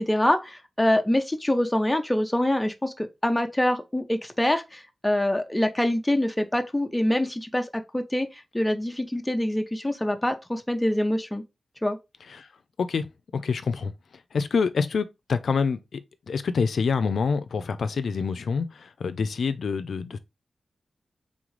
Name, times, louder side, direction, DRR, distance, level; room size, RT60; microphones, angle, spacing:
voice 1, 0.0-11.4 11.8-12.0, left 1 dB, 10° left, 0.6 m, -25 dB
voice 2, 13.3-13.9 14.3-16.0 16.3-20.2, left 5 dB, 80° left, 0.4 m, -26 dB
3.8 x 3.6 x 3.1 m
wide cardioid pair, 105°, 0 cm